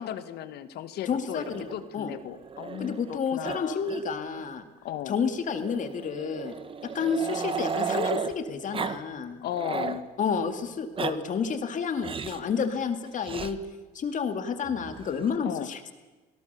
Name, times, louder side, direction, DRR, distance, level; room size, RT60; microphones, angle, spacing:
voice 1, 0.0-3.9 4.8-5.2 9.4-10.1 15.4-15.7, left 11 dB, 75° left, 12 dB, 1.5 m, -36 dB
voice 2, 1.1-1.7 1.9-2.1 2.8-4.6 5.1-6.5 6.8-9.4 10.2-13.6 13.9-15.8, left 6 dB, 50° left, 8 dB, 2.2 m, -30 dB
Growling, 1.3-3.1 3.4-3.6 3.8-4.0 4.3-4.4 5.5-8.3 8.7-9.0 9.3-10.0 10.7-11.1 12.0-12.4 13.2-13.5 14.6-15.3, right 5 dB, 30° right, 1.2 m, -34 dB
26.0 x 17.5 x 6.8 m, 1.2 s
cardioid pair, 110°, 17 cm